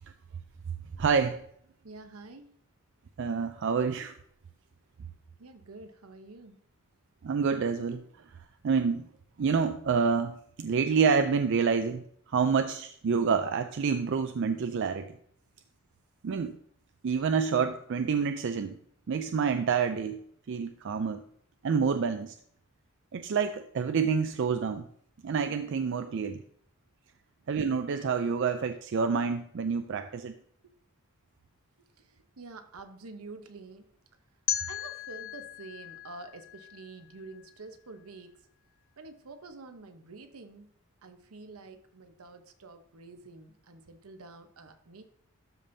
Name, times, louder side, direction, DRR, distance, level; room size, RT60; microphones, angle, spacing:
voice 1, 1.0-1.4 3.2-4.1 7.2-8.0 8.6-9.1 9.4-15.1 16.2-16.6 17.0-18.8 19.1-20.2 20.5-21.2 21.6-22.4 23.1-24.9 25.2-26.4 27.5-30.4, right 5 dB, 55° right, 8 dB, 0.4 m, -28 dB
voice 2, 1.8-2.6 5.4-6.6 31.8-33.9 34.7-38.5 39.0-40.7 41.0-45.0, right 3 dB, 80° right, 7 dB, 0.9 m, -48 dB
sound 1, 34.5-37.4, left 11 dB, 60° left, 0.5 m, -37 dB
12.5 x 5.2 x 2.7 m, 0.66 s
head